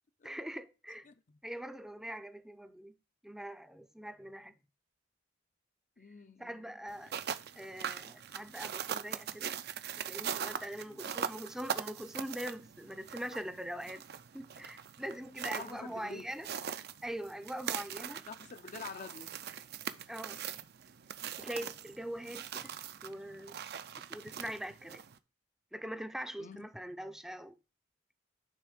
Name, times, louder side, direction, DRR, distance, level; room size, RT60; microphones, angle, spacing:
voice 1, 0.2-1.1 1.4-2.9 3.2-4.5 6.4-7.1 7.6-9.5 10.0-14.0 14.3-16.5 17.0-18.2 20.1-20.4 21.4-22.7 23.0-23.6 24.1-25.0 25.7-27.5, equal, 5° right, 0.5 m, -42 dB
voice 2, 1.1-1.4 6.0-6.7 10.9-11.1 15.6-16.3 18.3-19.4 26.4-26.7, left 4 dB, 40° left, 0.5 m, -47 dB
sound 1, 6.9-25.2, right 8 dB, 60° right, 0.5 m, -41 dB
8.9 x 3.5 x 5.0 m
head